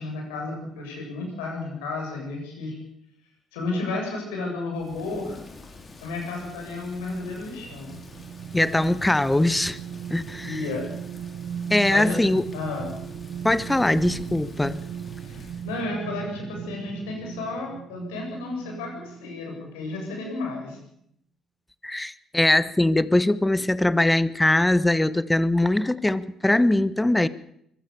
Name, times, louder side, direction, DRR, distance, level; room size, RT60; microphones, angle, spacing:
voice 1, 0.0-2.8 3.5-5.4 6.0-8.0 10.4-10.9 11.9-12.2 12.5-13.0 15.2-20.8, left 3 dB, 75° left, 7.4 m, -32 dB
Thunder / Rain, 4.7-15.8, left 3 dB, 35° left, 4.6 m, -47 dB
sound 1, 6.8-19.5 19.9-20.1, right 8 dB, 60° right, 0.8 m, -38 dB
voice 2, 8.5-9.8 10.1-10.6 11.7-12.4 13.4-14.8 21.8-27.3, left 1 dB, 10° left, 1.1 m, -21 dB
24.5 x 16.0 x 7.1 m
hypercardioid pair, 45°, 0 cm